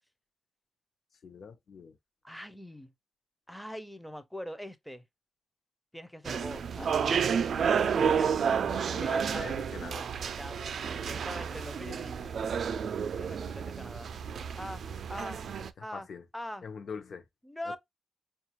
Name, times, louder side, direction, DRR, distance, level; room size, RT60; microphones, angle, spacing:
voice 1, 1.2-2.0 7.8-10.1 15.8-16.2 16.6-17.3, left 5 dB, 55° left, 0.6 m, -44 dB
voice 2, 2.2-2.9 3.5-5.0 5.9-7.7 8.0-8.3 8.8-9.5 10.4-12.4 13.1-14.1 14.6-14.8 15.1-15.4 15.8-16.1 16.3-16.7 17.4-17.8, equal, ahead, 0.4 m, -42 dB
sound 1, 6.2-15.7, right 7 dB, 60° right, 0.3 m, -31 dB
5.0 x 2.4 x 2.9 m
wide cardioid pair, 155°, 0 cm